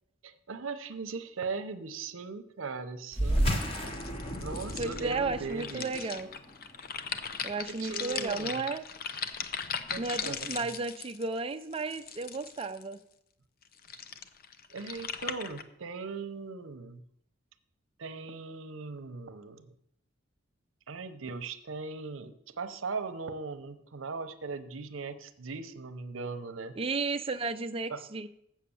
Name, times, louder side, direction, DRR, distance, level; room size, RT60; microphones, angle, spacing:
voice 1, 0.2-3.6 4.4-6.1 7.7-8.7 9.9-10.7 14.7-17.0 18.0-19.8 20.9-26.8 27.9-28.0, right 4 dB, 80° right, 9 dB, 0.8 m, -39 dB
sound 1, 3.1-8.0, equal, 30° left, 1.2 m, -33 dB
sound 2, 3.3-12.9 13.6-15.6, left 7 dB, 50° left, 0.6 m, -39 dB
voice 2, 4.8-6.3 7.4-8.8 10.0-13.0 26.8-28.3, right 3 dB, 30° right, 8 dB, 0.5 m, -33 dB
7.5 x 6.4 x 7.0 m, 0.74 s
head